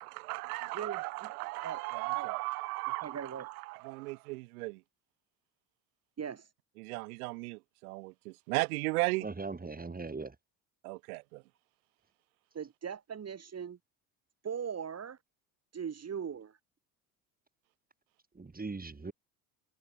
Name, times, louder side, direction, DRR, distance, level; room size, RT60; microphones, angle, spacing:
voice 1, 0.0-4.8 6.8-9.3 10.8-11.4, right 24 dB, 85° right, 1.9 m, -36 dB
voice 2, 0.7-1.3 1.6-1.8 2.1-2.3 3.0-3.5 6.2-6.5 12.5-13.8 14.4-15.2 15.7-16.6, right 7 dB, 35° right, 2.8 m, -39 dB
voice 3, 9.2-10.3 18.3-19.1, right 3 dB, 20° right, 6.7 m, -39 dB
supercardioid pair, 80°, 44 cm